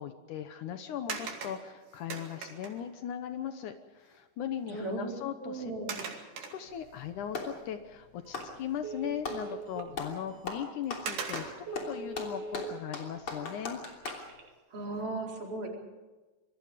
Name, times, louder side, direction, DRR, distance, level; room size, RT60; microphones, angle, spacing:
voice 1, 0.0-5.7 6.5-13.8, left 9 dB, 75° left, 9 dB, 2.4 m, -38 dB
sound 1, 1.1-2.9 4.1-4.2 4.6-4.8 5.9-7.1 7.6-7.7 10.1-10.2 11.1-11.8 14.1-14.4 14.9-15.0, right 5 dB, 85° right, 4.1 m, -40 dB
voice 2, 4.7-5.1 5.4-6.0 14.7-15.7, right 2 dB, 40° right, -1 dB, 5.2 m, -36 dB
Clapping, 6.7-7.6 8.2-9.5 9.9-10.2 10.5-14.3, left 4 dB, 45° left, 3.8 m, -39 dB
Telephone, 8.3-8.5 8.8-9.9 10.4-10.6 11.0-11.1 11.5-12.7 13.9-14.5, right 2 dB, 70° right, 3.9 m, -41 dB
26.5 x 22.5 x 5.1 m, 1.2 s
omnidirectional pair, 3.7 m